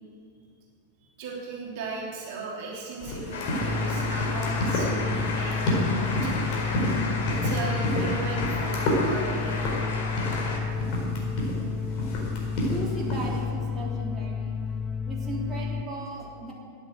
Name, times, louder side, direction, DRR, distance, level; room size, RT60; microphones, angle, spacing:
voice 1, 1.0-6.6 7.3-9.7 14.6-14.7, right 3 dB, 50° right, -3 dB, 3.0 m, -37 dB
sound 1, 3.0-13.4, left 1 dB, 40° left, 4.4 m, -30 dB
sound 2, 3.3-10.6, left 3 dB, 60° left, 3.0 m, -33 dB
sound 3, 3.6-15.8, left 5 dB, 10° left, 0.6 m, -31 dB
voice 2, 12.7-14.6 15.1-16.5, right 1 dB, 15° right, -4 dB, 3.2 m, -36 dB
13.5 x 9.5 x 7.9 m, 2.3 s
figure-of-eight pair, 90°, 0 cm